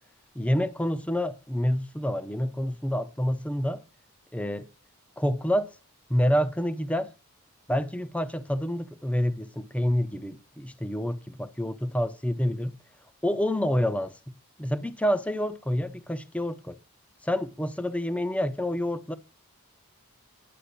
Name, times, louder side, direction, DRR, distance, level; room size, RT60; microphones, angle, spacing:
voice 1, 0.4-3.8 4.3-4.7 5.2-5.8 6.1-7.1 7.7-12.8 13.2-14.3 14.6-16.8 17.2-19.2, equal, 5° left, 0.5 m, -28 dB
10.0 x 5.6 x 6.6 m
head